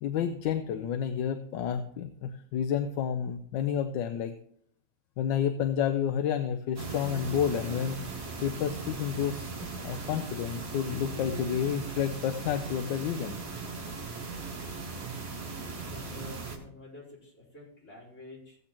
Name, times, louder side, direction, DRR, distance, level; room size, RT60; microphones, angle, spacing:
voice 1, 0.0-4.4 5.2-8.0 8.4-13.4, left 8 dB, 75° left, 8 dB, 1.3 m, -30 dB
sound 1, 6.8-16.6, right 4 dB, 45° right, 2.0 m, -38 dB
voice 2, 15.8-18.6, left 2 dB, 40° left, -6 dB, 4.2 m, -48 dB
16.5 x 8.1 x 2.9 m, 0.63 s
omnidirectional pair, 2.0 m